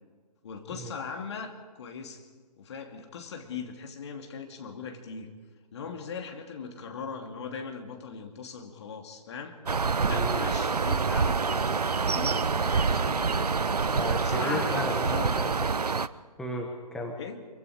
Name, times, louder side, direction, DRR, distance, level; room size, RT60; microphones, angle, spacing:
voice 1, 0.4-1.5 1.8-2.3 2.6-5.4 5.7-9.6 10.0-13.5 14.2-15.4 17.1-17.5, left 5 dB, 45° left, 3 dB, 2.7 m, -39 dB
sound 1, 9.7-16.1, right 5 dB, 70° right, 0.7 m, -26 dB
voice 2, 10.1-10.4 13.9-15.5 15.8-15.9 16.4-17.2, left 1 dB, 5° left, 1 dB, 1.2 m, -35 dB
24.5 x 24.0 x 5.0 m, 1.5 s
figure-of-eight pair, 135°, 21 cm